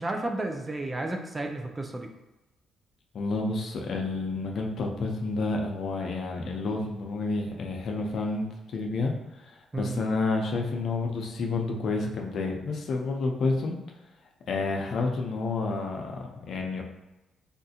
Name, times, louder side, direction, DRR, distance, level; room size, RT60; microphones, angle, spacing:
voice 1, 0.0-2.1 9.7-10.0, right 2 dB, 20° right, 4 dB, 0.5 m, -32 dB
voice 2, 3.1-13.8 14.5-16.8, left 3 dB, 60° left, 1 dB, 0.6 m, -30 dB
3.5 x 2.5 x 2.7 m, 1.0 s
cardioid pair, 90°, 0 cm